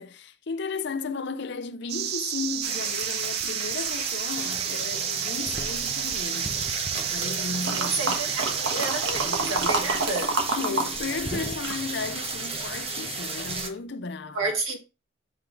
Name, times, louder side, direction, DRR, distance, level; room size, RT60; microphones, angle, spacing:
voice 1, 0.0-6.5 6.9-8.2 9.2-10.1 10.5-14.5, left 4 dB, 55° left, 0.6 m, -34 dB
sound 1, 1.9-10.3, right 12 dB, 50° right, 0.3 m, -32 dB
sound 2, 2.6-13.7, right 3 dB, 30° right, 0.9 m, -33 dB
sound 3, 7.6-10.9 11.2-12.6 13.1-13.2, right 3 dB, 65° right, 1.4 m, -28 dB
voice 2, 7.6-10.4 14.3-14.8, right 3 dB, 85° right, 1.8 m, -31 dB
7.9 x 3.5 x 3.8 m
head